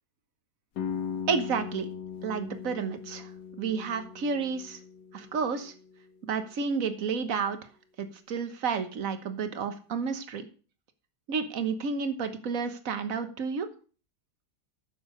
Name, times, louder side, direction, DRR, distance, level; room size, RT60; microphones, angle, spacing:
sound 1, 0.8-6.5, left 7 dB, 75° left, 1.9 m, -39 dB
voice 1, 1.3-1.9 2.2-3.3 3.6-4.8 5.1-5.7 6.2-7.6 8.0-10.4 11.3-13.7, right 5 dB, 50° right, 9 dB, 1.6 m, -31 dB
10.5 x 7.0 x 6.5 m, 0.39 s
omnidirectional pair, 1.9 m